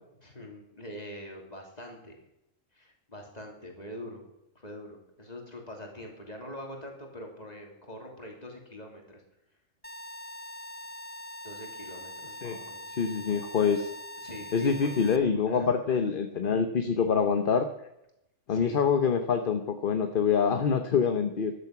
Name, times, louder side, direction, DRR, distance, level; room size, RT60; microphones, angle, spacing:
voice 1, 0.2-2.2 2.7-4.2 4.5-9.2 11.4-12.9 14.2-14.7 15.4-15.8 18.5-18.8, left 1 dB, 30° left, 1 dB, 3.2 m, -44 dB
sound 1, 9.8-15.2, left 1 dB, 10° left, 0.6 m, -43 dB
voice 2, 13.0-13.9 14.5-17.7 18.5-21.5, left 6 dB, 45° left, 7 dB, 1.0 m, -25 dB
13.0 x 11.5 x 6.0 m, 0.83 s
omnidirectional pair, 1.4 m